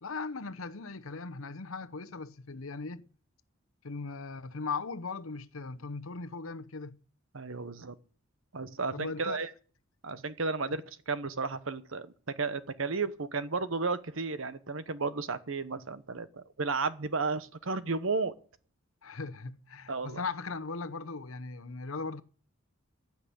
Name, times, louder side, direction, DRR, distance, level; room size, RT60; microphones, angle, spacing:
voice 1, 0.0-3.0 3.8-7.0 8.9-9.4 19.0-22.2, left 4 dB, 75° left, 0.9 m, -38 dB
voice 2, 7.3-7.9 8.5-9.5 10.0-12.1 12.4-18.3 19.9-20.2, right 4 dB, 65° right, 1.0 m, -33 dB
15.5 x 5.9 x 8.5 m
head